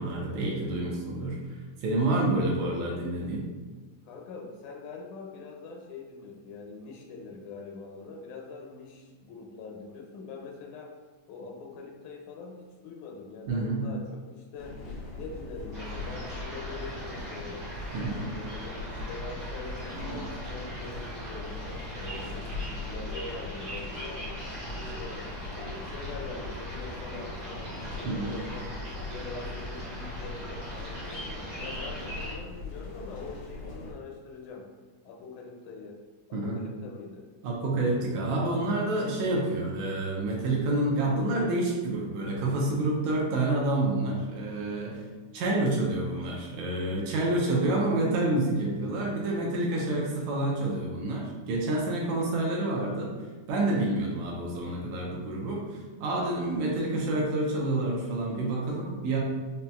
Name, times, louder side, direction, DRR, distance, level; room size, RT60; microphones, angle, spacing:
voice 1, 0.0-3.5 13.5-13.8 17.9-18.3 28.0-28.3 36.3-36.6 37.4-45.0 45.3-53.1 53.5-59.2, right 2 dB, 80° right, -2 dB, 2.1 m, -28 dB
voice 2, 4.1-10.9 11.3-14.8 15.2-17.7 18.3-21.7 21.9-24.3 24.8-34.7 35.0-36.0 36.3-37.2, left 4 dB, 90° left, 1 dB, 2.1 m, -43 dB
sound 1, 14.6-33.9, left 2 dB, 75° left, 1.3 m, -40 dB
sound 2, 15.7-32.4, equal, 65° right, 0.9 m, -40 dB
5.4 x 2.8 x 2.3 m, 1.3 s
omnidirectional pair, 3.3 m